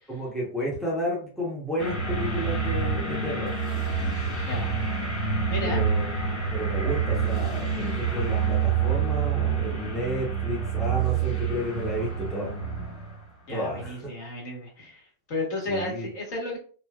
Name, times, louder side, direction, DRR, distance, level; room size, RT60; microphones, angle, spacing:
voice 1, 0.1-3.6 5.6-12.5 13.5-14.0 15.7-16.1, equal, ahead, -6 dB, 0.9 m, -32 dB
sound 1, 1.8-13.2, right 6 dB, 25° left, 1.5 m, -27 dB
voice 2, 5.5-5.8 13.5-16.6, left 2 dB, 50° left, -1 dB, 1.5 m, -33 dB
3.1 x 2.7 x 2.3 m, 0.41 s
supercardioid pair, 150°, 0 cm